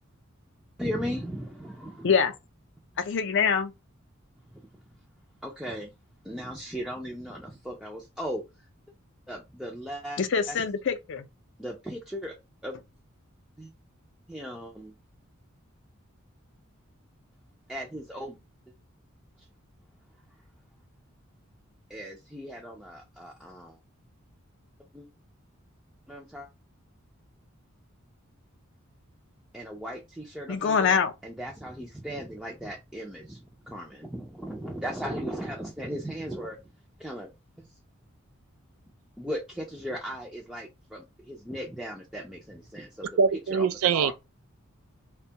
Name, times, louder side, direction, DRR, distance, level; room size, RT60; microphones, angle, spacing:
voice 1, 0.8-2.1 4.5-4.7 5.4-5.9 6.2-8.4 9.3-10.2 10.5-10.6 11.6-12.4 12.6-12.8 13.6-13.7 14.3-14.9 17.7-18.4 21.9-23.8 24.9-25.1 26.1-26.5 29.5-31.0 31.2-36.6 37.0-37.3 37.6-37.7 39.2-43.1 43.5-43.7 43.9-44.1, equal, 5° right, 0.4 m, -37 dB
voice 2, 3.0-3.7 10.2-11.3 30.5-31.1, left 6 dB, 55° left, 0.4 m, -24 dB
voice 3, 43.2-44.1, right 6 dB, 80° right, 0.4 m, -23 dB
2.6 x 2.2 x 2.7 m
head